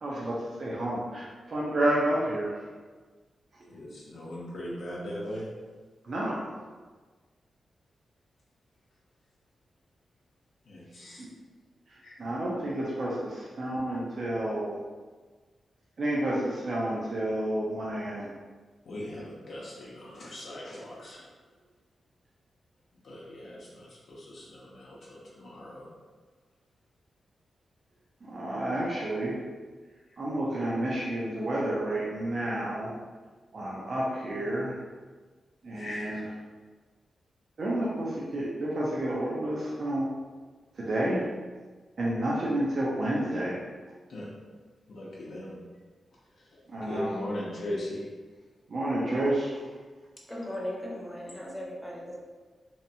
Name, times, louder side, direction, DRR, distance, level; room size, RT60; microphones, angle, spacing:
voice 1, 0.0-2.6 6.0-6.5 11.2-11.3 11.9-14.8 16.0-18.3 28.2-29.4 30.2-32.9 33.5-34.8 35.6-36.2 37.6-40.1 40.7-41.3 42.0-43.6 46.7-47.1 48.7-49.6, right 1 dB, 55° right, -7 dB, 0.5 m, -30 dB
voice 2, 3.7-5.4 10.6-11.2 12.0-12.3 18.8-21.3 23.0-25.9 30.1-30.2 35.8-36.2 44.1-44.3 44.9-45.6 46.4-48.0, left 1 dB, 75° left, -6 dB, 0.5 m, -39 dB
voice 3, 50.3-52.1, left 1 dB, 10° left, -3 dB, 0.7 m, -37 dB
2.8 x 2.2 x 2.7 m, 1.4 s
cardioid pair, 75°, 0 cm